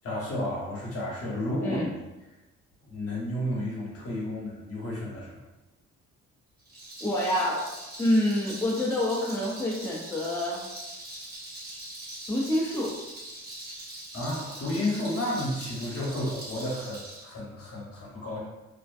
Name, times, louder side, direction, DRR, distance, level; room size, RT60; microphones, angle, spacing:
voice 1, 0.0-1.8 2.8-5.4 14.1-18.4, left 1 dB, 50° left, -4 dB, 1.0 m, -32 dB
Rattle, 6.6-17.2, right 1 dB, 30° right, 1.0 m, -42 dB
voice 2, 7.0-7.7 8.0-10.6 12.3-12.9, left 1 dB, 10° left, -5 dB, 0.5 m, -27 dB
2.5 x 2.2 x 2.3 m, 1.1 s
cardioid pair, 90°, 30 cm